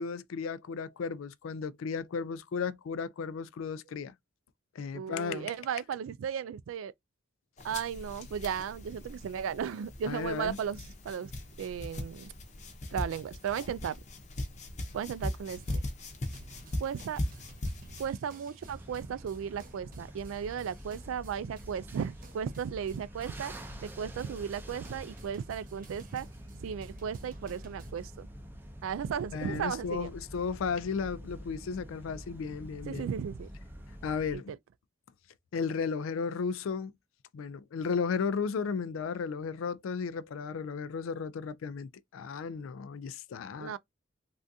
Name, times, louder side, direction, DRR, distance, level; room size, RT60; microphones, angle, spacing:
voice 1, 0.0-4.1 4.8-5.5 10.1-10.6 29.3-33.1 34.0-34.5 35.5-36.9 37.3-43.8, left 5 dB, 90° left, 0.4 m, -34 dB
voice 2, 4.9-6.9 7.6-11.3 11.6-12.3 12.9-14.0 14.9-15.8 16.8-17.2 18.0-23.5 23.8-26.3 26.5-28.3 28.8-30.1 32.8-33.5 34.3-34.6 43.6-43.8, right 8 dB, 85° right, 0.3 m, -35 dB
sound 1, 7.6-18.1, left 1 dB, 35° left, 0.6 m, -39 dB
sound 2, 15.6-27.9, right 3 dB, 45° right, 0.9 m, -54 dB
sound 3, 18.6-34.4, equal, 10° right, 0.5 m, -47 dB
3.4 x 2.5 x 2.6 m
head